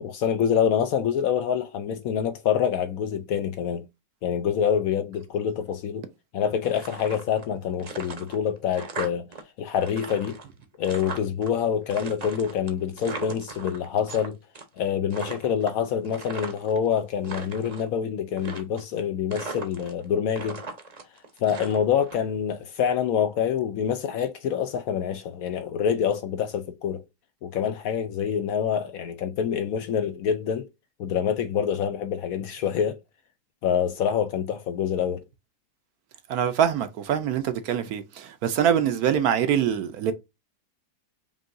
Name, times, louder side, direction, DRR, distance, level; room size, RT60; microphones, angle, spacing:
voice 1, 0.0-3.9 4.2-6.1 6.3-9.3 9.6-10.4 10.8-14.4 14.8-20.6 21.4-27.0 27.4-30.7 31.0-33.0 33.6-35.2, left 8 dB, 70° left, 0.9 m, -26 dB
sound 1, 6.6-7.5 7.8-9.4 9.7-11.5 11.9-14.3 14.5-14.8 15.1-16.8 17.1-17.9 18.4-19.0 19.3-20.0 20.3-22.2, right 3 dB, 35° right, 0.7 m, -38 dB
voice 2, 36.3-40.1, right 9 dB, 70° right, 1.1 m, -24 dB
5.3 x 2.7 x 2.5 m
omnidirectional pair, 1.8 m